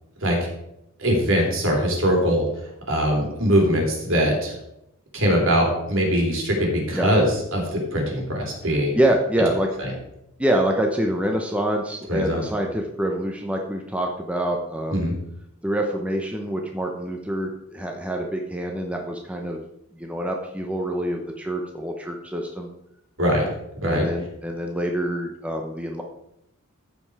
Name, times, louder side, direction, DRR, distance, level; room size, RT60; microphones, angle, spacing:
voice 1, 1.0-2.4 2.9-4.5 5.1-8.9 12.1-12.4 14.9-15.1 23.2-23.5 23.8-24.0, equal, 65° right, 0 dB, 3.3 m, -21 dB
voice 2, 8.6-9.7 10.4-15.0 15.6-19.6 19.9-22.7 23.8-26.0, right 1 dB, 5° right, 2 dB, 0.8 m, -26 dB
14.5 x 5.2 x 4.8 m, 0.83 s
head